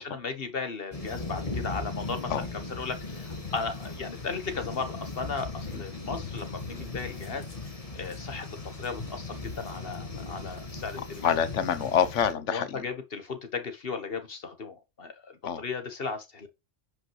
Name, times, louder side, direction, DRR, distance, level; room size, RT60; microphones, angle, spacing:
voice 1, 0.0-11.2 12.5-16.5, left 4 dB, 50° left, 1.6 m, -36 dB
sound 1, 0.9-12.3, left 3 dB, 30° left, 1.7 m, -38 dB
voice 2, 11.2-12.8 15.4-15.6, left 8 dB, 75° left, 1.2 m, -26 dB
9.7 x 5.5 x 3.2 m
omnidirectional pair, 1.3 m